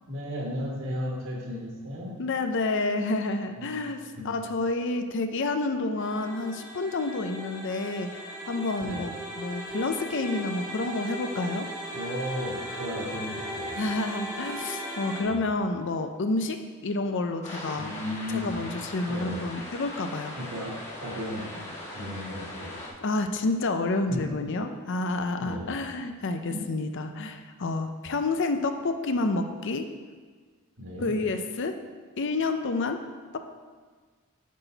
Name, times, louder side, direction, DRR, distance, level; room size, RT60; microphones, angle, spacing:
voice 1, 0.1-2.1 3.6-3.7 4.2-4.3 8.8-9.0 11.9-13.8 15.3-15.4 17.8-18.6 19.1-19.4 20.4-20.7 21.0-21.6 21.9-22.8 24.1-24.7 25.4-25.7 26.5-26.6 30.8-31.1, equal, 60° right, -3 dB, 1.9 m, -35 dB
voice 2, 2.2-4.0 4.2-9.1 9.4-11.7 13.8-17.9 18.3-20.4 23.0-29.9 31.0-31.8 32.2-33.0 33.3-33.4, left 2 dB, 55° left, 7 dB, 0.5 m, -29 dB
sound 1, 6.0-15.2, equal, 20° right, 1.4 m, -37 dB
sound 2, 17.4-22.9, left 1 dB, 30° left, 1.7 m, -40 dB
8.4 x 5.9 x 4.0 m, 1.5 s
head